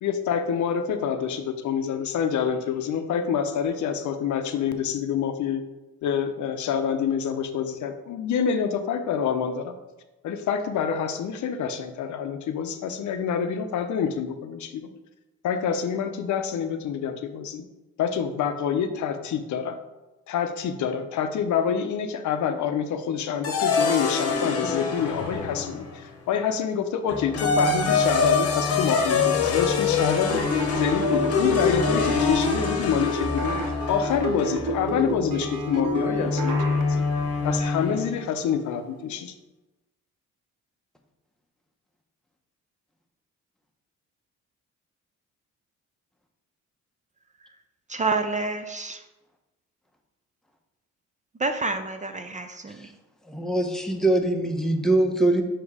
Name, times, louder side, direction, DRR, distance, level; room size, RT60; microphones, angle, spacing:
voice 1, 0.0-5.6 6.0-9.8 10.2-14.9 15.4-17.6 18.0-19.7 20.3-30.4 30.8-37.0 37.4-39.3, left 7 dB, 75° left, 8 dB, 0.6 m, -27 dB
sound 1, 23.4-26.0 27.1-38.2, left 4 dB, 50° left, 0.9 m, -25 dB
sound 2, 30.3-36.8, right 3 dB, 85° right, 0.8 m, -31 dB
voice 2, 47.9-49.0 51.4-52.9, right 3 dB, 25° right, 7 dB, 0.5 m, -28 dB
voice 3, 53.3-55.4, right 2 dB, ahead, 3 dB, 0.8 m, -22 dB
7.2 x 2.9 x 4.8 m, 1.1 s
cardioid pair, 90°, 30 cm